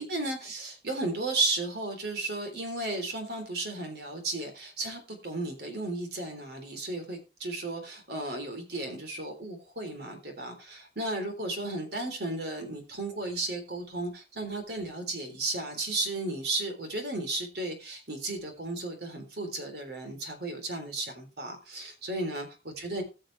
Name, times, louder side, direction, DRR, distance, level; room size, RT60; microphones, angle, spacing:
voice 1, 0.0-23.0, right 2 dB, 60° right, 5 dB, 3.6 m, -34 dB
19.0 x 6.5 x 3.4 m, 0.29 s
head